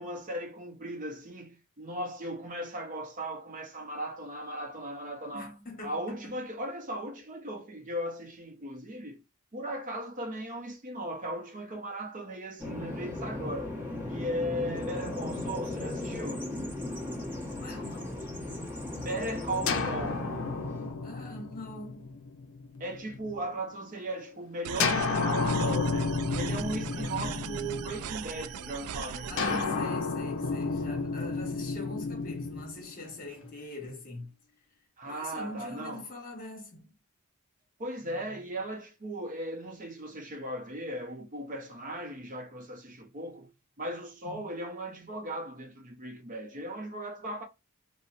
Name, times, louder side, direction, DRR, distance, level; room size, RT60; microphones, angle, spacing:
voice 1, 0.0-5.5 5.8-9.2 9.5-13.8 14.1-16.5 19.0-20.3 22.8-29.6 35.0-36.1 37.8-43.5 43.8-47.4, right 1 dB, 35° right, 0.6 m, -37 dB
voice 2, 5.3-6.3 17.5-18.2 21.0-22.1 26.8-27.3 29.3-34.3 35.0-36.9 44.2-44.5, left 2 dB, 40° left, 1.1 m, -42 dB
Bird vocalization bird call bird song, 12.6-20.9, left 2 dB, 10° right, 1.0 m, -36 dB
sound 1, 19.7-23.5 24.8-28.4 29.4-33.5, left 4 dB, 55° left, 0.5 m, -32 dB
sound 2, 24.6-29.6, right 7 dB, 85° right, 0.4 m, -39 dB
4.2 x 2.1 x 2.4 m
head